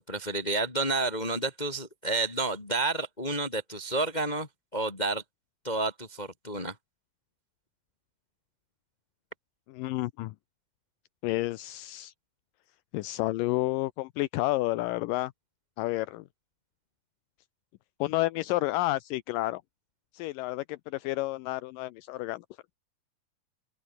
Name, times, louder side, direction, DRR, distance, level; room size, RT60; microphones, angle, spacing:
voice 1, 0.0-5.2 5.6-6.7, right 2 dB, 20° left, 1.2 m, -30 dB
voice 2, 9.7-10.3 11.2-12.1 12.9-15.3 15.8-16.3 18.0-19.6 20.1-22.5, left 18 dB, 80° left, 2.2 m, -30 dB
open air
omnidirectional pair, 4.2 m